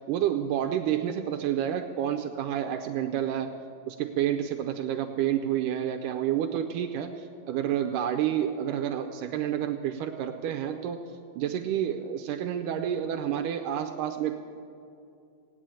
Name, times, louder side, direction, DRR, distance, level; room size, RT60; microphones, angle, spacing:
voice 1, 0.1-3.5 3.9-11.0 11.4-14.4, right 10 dB, 80° right, 5 dB, 2.1 m, -29 dB
17.5 x 9.1 x 8.9 m, 2.6 s
omnidirectional pair, 3.9 m